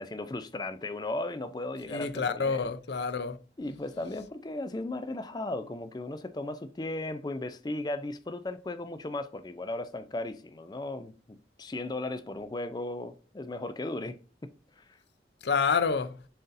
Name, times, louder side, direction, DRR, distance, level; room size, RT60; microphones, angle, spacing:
voice 1, 0.0-2.7 3.6-14.1 14.8-14.9, left 2 dB, 20° left, 0.4 m, -36 dB
voice 2, 1.9-3.4 15.4-16.2, left 5 dB, 70° left, 0.6 m, -28 dB
10.5 x 4.0 x 2.6 m
head